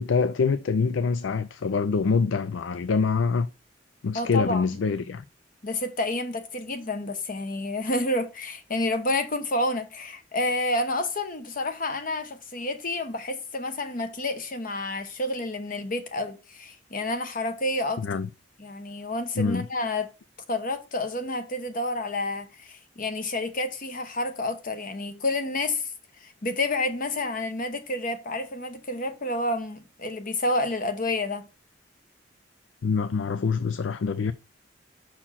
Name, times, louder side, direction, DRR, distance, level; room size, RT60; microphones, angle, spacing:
voice 1, 0.0-3.5 4.0-5.2 18.0-18.3 19.4-19.7 32.8-34.3, left 5 dB, 80° left, 0.4 m, -25 dB
voice 2, 4.1-4.8 5.6-18.0 18.6-20.1 20.5-25.9 26.2-31.5, left 2 dB, 45° left, 1.0 m, -29 dB
6.0 x 4.3 x 5.6 m
head